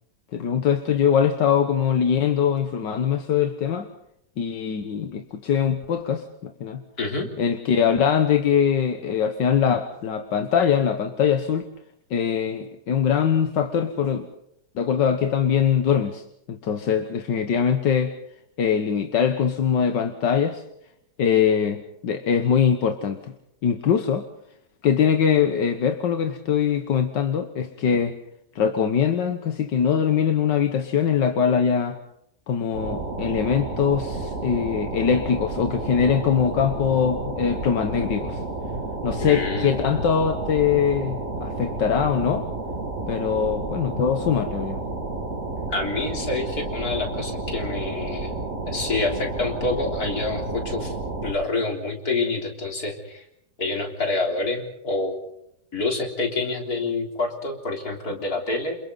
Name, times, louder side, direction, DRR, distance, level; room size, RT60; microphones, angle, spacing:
voice 1, 0.3-3.9 4.4-6.8 7.4-11.7 12.1-14.3 14.8-18.1 18.6-20.6 21.2-23.3 23.6-24.3 24.8-28.2 28.6-32.0 32.5-38.4 39.0-42.5 43.1-44.8, left 7 dB, 85° left, 7 dB, 1.9 m, -22 dB
voice 2, 7.0-7.3 39.2-39.9 45.7-48.3 48.7-50.9 51.2-53.3 53.6-55.2 55.7-58.8, left 3 dB, 60° left, 2 dB, 4.2 m, -27 dB
sound 1, 32.7-51.3, right 2 dB, 45° right, 2.7 m, -31 dB
28.5 x 28.0 x 4.0 m, 0.76 s
omnidirectional pair, 1.9 m